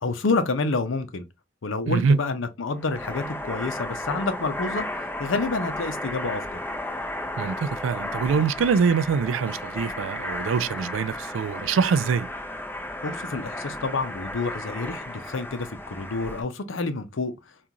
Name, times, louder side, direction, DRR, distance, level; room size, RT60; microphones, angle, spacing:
voice 1, 0.0-1.2 1.6-4.9 5.2-6.6 13.0-17.3, left 3 dB, 85° left, 0.6 m, -28 dB
voice 2, 1.9-2.2 7.4-12.3, right 5 dB, 80° right, 0.3 m, -24 dB
sound 1, 2.8-16.4, left 1 dB, 10° left, 0.8 m, -34 dB
3.7 x 2.5 x 2.8 m
head